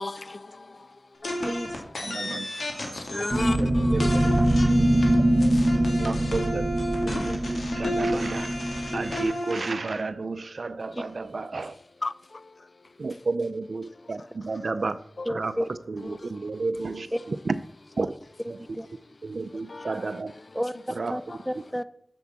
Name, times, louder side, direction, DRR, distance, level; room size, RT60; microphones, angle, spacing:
voice 1, 0.0-1.5 1.8-2.2 2.6-6.1 10.8-10.9 11.5-13.3 13.6-14.9 15.2-15.4 16.0-17.1 18.0-18.1 19.3-20.6 21.3-21.5, left 3 dB, 50° left, 0.4 m, -40 dB
sound 1, 1.2-3.6 4.0-9.7, left 1 dB, 85° left, 2.3 m, -32 dB
voice 2, 1.4-1.7 4.6-4.8 11.0-11.1 15.2-15.7 17.1-17.2 18.4-18.9 20.5-20.7 21.1-21.8, equal, 5° right, 0.6 m, -31 dB
voice 3, 2.1-2.5 3.1-3.2 3.6-4.2 6.0-6.6 7.1-8.5 8.9-11.7 13.0-15.0 15.4-15.5 16.3-17.1 18.0-18.1 19.3-20.3 21.0-21.1, right 3 dB, 65° right, 0.6 m, -31 dB
sound 2, 3.3-9.2, right 1 dB, 30° right, 1.1 m, -23 dB
7.9 x 7.0 x 7.3 m
wide cardioid pair, 90°, 0 cm